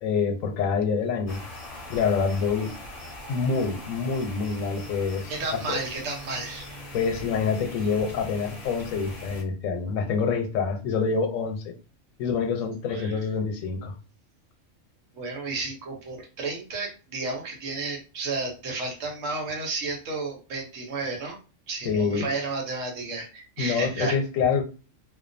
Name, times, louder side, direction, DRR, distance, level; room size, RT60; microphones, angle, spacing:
voice 1, 0.0-1.4 1.9-2.8 3.3-5.8 6.9-11.7 12.2-13.9 21.8-22.3 23.6-24.6, left 5 dB, 90° left, 1.0 m, -26 dB
sound 1, 1.3-9.4, left 1 dB, 40° left, 0.6 m, -41 dB
voice 2, 5.3-6.7 12.6-13.2 15.1-21.4 21.7-24.2, right 3 dB, 75° right, 1.2 m, -32 dB
2.4 x 2.2 x 2.5 m
omnidirectional pair, 1.4 m